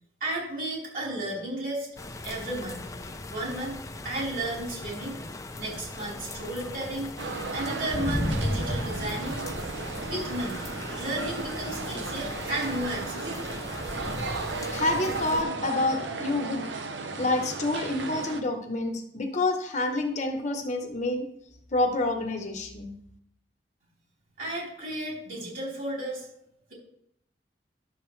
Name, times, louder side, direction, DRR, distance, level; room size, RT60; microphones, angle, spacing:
voice 1, 0.2-1.9 2.2-2.9 3.3-5.2 5.6-7.1 7.5-9.4 10.0-10.7 10.9-13.5 24.4-26.3, right 1 dB, 50° right, -4 dB, 3.9 m, -33 dB
sound 1, 2.0-15.4, left 1 dB, 20° left, 0.5 m, -36 dB
sound 2, 7.2-18.4, right 4 dB, 85° right, 0.8 m, -35 dB
voice 2, 14.7-16.7 17.2-21.3 21.7-22.9, left 2 dB, 40° left, 4 dB, 1.0 m, -28 dB
11.5 x 6.9 x 3.2 m, 0.73 s
head